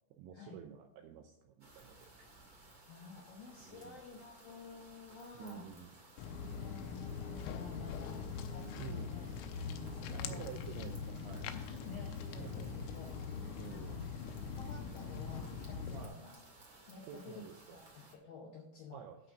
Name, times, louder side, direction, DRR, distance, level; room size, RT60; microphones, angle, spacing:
voice 1, 0.2-2.3 3.6-4.0 5.3-5.9 8.8-9.1 10.1-11.7 12.4-12.7 13.6-14.1 15.9-16.2 17.1-17.8 18.9-19.2, right 9 dB, 80° right, 4 dB, 2.7 m, -50 dB
sound 1, 1.6-18.1, right 2 dB, 55° right, 1.0 m, -59 dB
voice 2, 2.9-5.7 6.6-9.3 9.6-10.5 11.4-13.1 13.7-14.0 14.6-16.4 16.9-19.1, left 4 dB, 70° left, -2 dB, 2.3 m, -52 dB
Walk footsteps, 6.2-16.1, left 6 dB, 85° left, 3.3 m, -42 dB
11.5 x 4.9 x 6.3 m, 0.79 s
omnidirectional pair, 5.8 m